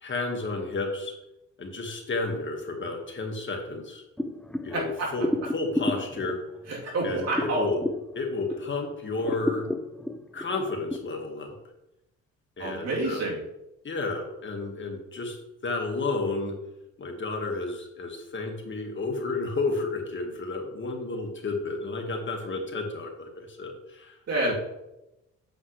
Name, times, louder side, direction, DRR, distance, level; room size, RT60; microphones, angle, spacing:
voice 1, 0.0-1.1 1.6-4.0 4.6-6.4 7.0-7.8 8.1-9.7 10.3-11.6 12.6-13.2 13.8-15.4 15.6-16.5 17.0-24.2, left 3 dB, 40° left, 2 dB, 1.8 m, -31 dB
sound 1, 4.2-8.8 9.1-11.0, left 1 dB, 5° left, 0.6 m, -32 dB
voice 2, 4.7-5.1 6.7-7.7 12.6-13.4 24.3-24.5, right 2 dB, 55° right, -3 dB, 3.4 m, -28 dB
8.9 x 7.4 x 3.3 m, 0.90 s
cardioid pair, 90°, 30 cm